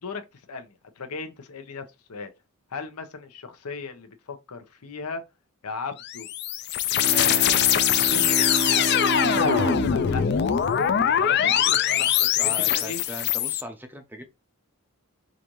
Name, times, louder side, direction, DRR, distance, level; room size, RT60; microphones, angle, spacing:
voice 1, 0.5-1.8 2.1-2.3 2.7-5.2 5.6-6.3 7.1-10.2 11.2-13.0, left 4 dB, 90° left, 0.8 m, -36 dB
sound 1, 6.0-13.6, left 9 dB, 50° left, 0.3 m, -22 dB
Bowed string instrument, 6.9-11.8, right 2 dB, 75° right, 0.7 m, -31 dB
voice 2, 12.4-14.3, equal, 10° right, 0.5 m, -39 dB
4.9 x 2.6 x 3.0 m
head